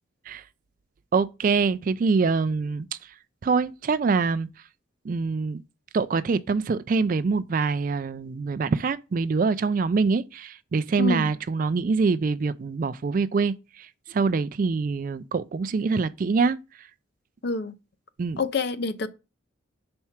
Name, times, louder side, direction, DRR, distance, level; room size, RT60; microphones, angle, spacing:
voice 1, 1.1-3.1 3.4-4.5 5.0-5.6 5.9-16.6 18.2-18.4, right 4 dB, 40° right, 0.3 m, -25 dB
voice 2, 11.0-11.3 17.4-17.7 18.4-19.1, left 3 dB, 55° left, 0.5 m, -27 dB
4.6 x 4.3 x 5.7 m
head